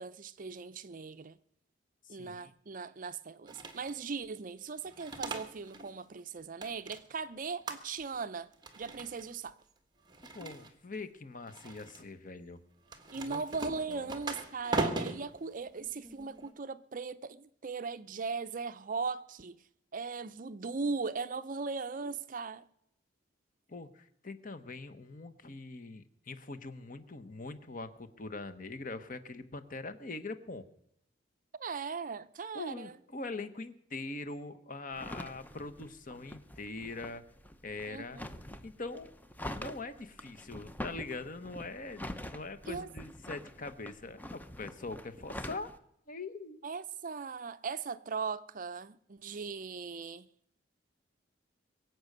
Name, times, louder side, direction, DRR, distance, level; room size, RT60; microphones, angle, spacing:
voice 1, 0.0-1.4 2.1-8.5 8.8-9.6 13.1-19.6 19.9-22.6 31.6-32.9 37.9-38.3 42.7-42.9 46.6-50.3, right 4 dB, 45° right, 0.6 m, -38 dB
voice 2, 2.0-2.5 10.3-12.6 13.1-13.4 13.9-14.1 23.7-30.6 32.5-37.2 37.6-38.2 38.6-39.1 39.5-45.7 46.1-46.6, left 3 dB, 45° left, 1.1 m, -43 dB
sound 1, 3.5-4.0 4.8-5.9 6.2-7.3 7.7-8.2 8.5-9.3 10.1-11.0 11.5-12.0 12.8-16.5, right 3 dB, 25° right, 1.5 m, -39 dB
sound 2, 34.9-45.8, left 1 dB, 10° left, 0.7 m, -45 dB
23.0 x 8.0 x 6.6 m
head